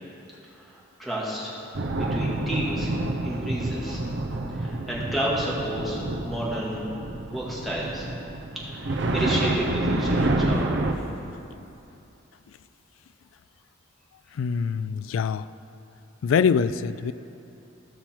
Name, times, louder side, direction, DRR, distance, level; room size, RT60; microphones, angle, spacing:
voice 1, 0.5-1.6 1.9-2.9 3.2-4.0 4.5-6.8 7.3-8.1 8.5-10.7, equal, ahead, -7 dB, 1.9 m, -31 dB
sound 1, 1.7-10.9, right 2 dB, 65° right, 0.7 m, -28 dB
voice 2, 14.3-15.5 16.2-17.1, left 6 dB, 80° left, 15 dB, 0.3 m, -24 dB
16.0 x 5.6 x 4.4 m, 2.8 s
head